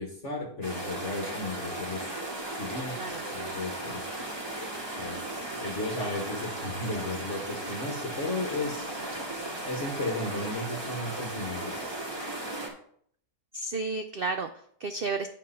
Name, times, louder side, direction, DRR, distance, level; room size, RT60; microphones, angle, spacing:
voice 1, 0.0-2.1 2.5-3.0 3.3-4.3 5.0-9.3 9.7-11.9, left 2 dB, 50° left, 1 dB, 1.7 m, -35 dB
sound 1, 0.6-12.7, right 1 dB, 15° right, 1.9 m, -36 dB
voice 2, 2.9-3.2 13.5-15.3, right 3 dB, 85° right, 7 dB, 0.5 m, -32 dB
10.5 x 4.3 x 5.6 m, 0.63 s
omnidirectional pair, 1.7 m